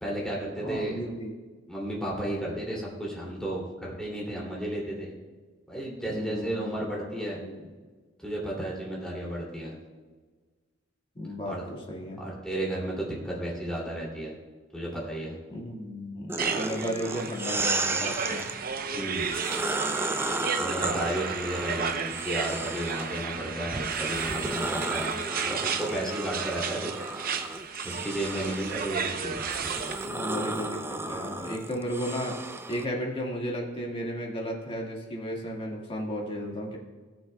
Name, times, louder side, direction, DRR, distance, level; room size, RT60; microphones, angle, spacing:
voice 1, 0.0-1.2 1.7-5.1 5.7-7.4 8.2-9.7 11.4-11.6 12.2-14.3 14.7-15.4 18.9-19.8 20.6-26.9 27.8-29.3, right 1 dB, 5° left, -4 dB, 2.6 m, -33 dB
voice 2, 0.6-1.4 6.1-7.0 7.3-7.6 11.2-12.2 15.5-18.6 30.0-32.4 32.7-36.8, equal, 30° left, -1 dB, 1.8 m, -34 dB
sound 1, 16.3-18.6 19.1-23.2 23.7-32.9, right 2 dB, 10° right, 0.4 m, -34 dB
sound 2, 16.4-30.1, right 6 dB, 50° right, 0.7 m, -33 dB
17.0 x 7.2 x 2.3 m, 1.4 s
head